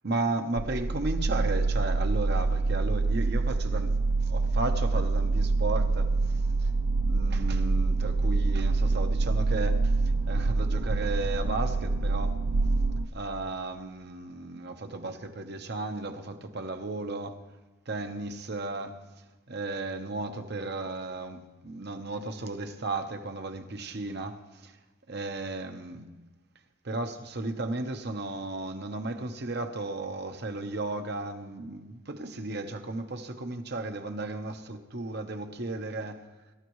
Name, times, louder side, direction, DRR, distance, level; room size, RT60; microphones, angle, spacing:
voice 1, 0.0-3.9 4.2-6.7 7.1-12.4 13.1-17.4 17.9-19.0 19.5-24.8 25.1-26.2 26.8-36.3, right 2 dB, 55° right, 1.0 m, -34 dB
sound 1, 0.6-13.1, right 3 dB, 75° right, 0.6 m, -26 dB
25.0 x 13.0 x 3.2 m
head